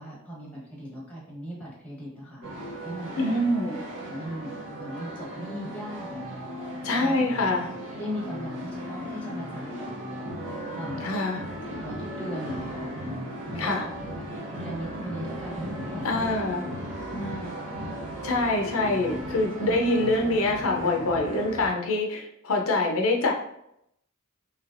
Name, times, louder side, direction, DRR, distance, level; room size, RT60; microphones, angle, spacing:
voice 1, 0.0-3.4 4.0-4.5 4.8-6.2 6.9-7.2 7.5-7.7 8.0-9.9 10.8-11.1 11.8-12.9 13.5-14.2 14.5-16.4 17.0-17.5 19.5-19.7 20.2-20.5, equal, 5° left, -5 dB, 1.0 m, -38 dB
sound 1, 2.4-21.7, equal, 65° right, 0.9 m, -36 dB
voice 2, 3.2-3.8 6.8-7.7 11.0-11.4 13.6-13.9 16.0-16.6 18.2-23.3, left 2 dB, 85° left, 1 dB, 0.5 m, -25 dB
3.2 x 2.9 x 2.5 m, 0.76 s
head